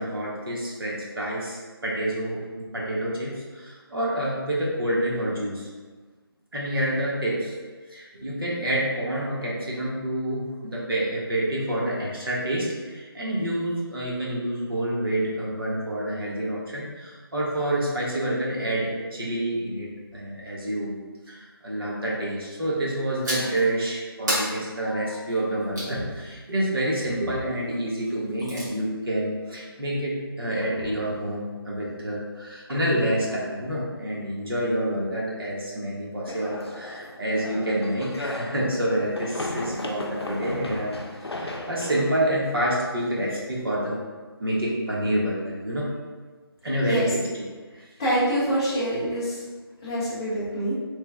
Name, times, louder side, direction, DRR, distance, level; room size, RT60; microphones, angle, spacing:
voice 1, 0.0-5.7 6.5-7.5 7.9-21.0 21.3-44.0 44.4-45.9 46.6-47.5 47.7-47.9, right 1 dB, 65° right, -5 dB, 1.1 m, -28 dB
sound 1, 23.2-23.6 24.3-26.0 28.1-28.7, equal, 45° right, 1.3 m, -31 dB
sound 2, 36.3-43.4, left 2 dB, 85° left, 0.5 m, -36 dB
voice 2, 48.0-49.4 49.8-50.7, right 1 dB, 10° left, -10 dB, 0.4 m, -25 dB
3.2 x 2.2 x 3.2 m, 1.4 s
figure-of-eight pair, 160°, 13 cm